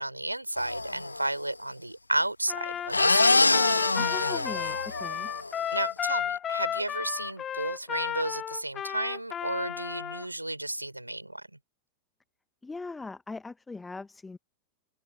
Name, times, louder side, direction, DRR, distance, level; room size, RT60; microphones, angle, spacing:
voice 1, 0.0-3.6 4.1-4.4 5.7-11.4, right 1 dB, 85° right, 3.3 m, -33 dB
sound 1, 0.6-1.3 2.9-5.5, left 3 dB, 80° left, 1.2 m, -25 dB
Trumpet, 2.5-10.3, left 9 dB, 25° left, 0.6 m, -33 dB
voice 2, 4.0-5.3 12.6-14.4, left 3 dB, 10° left, 1.0 m, -40 dB
figure-of-eight pair, 90°, 0 cm